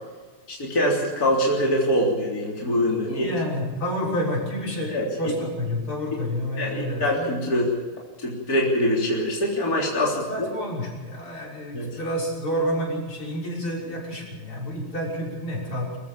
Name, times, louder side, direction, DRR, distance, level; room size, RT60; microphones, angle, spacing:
voice 1, 0.5-3.3 4.9-5.3 6.6-7.8 8.2-10.5 11.7-11.9, equal, 45° left, -3 dB, 4.1 m, -24 dB
voice 2, 3.0-7.3 10.0-16.0, equal, 75° left, -3 dB, 7.3 m, -29 dB
25.5 x 15.0 x 7.3 m, 1.4 s
omnidirectional pair, 2.3 m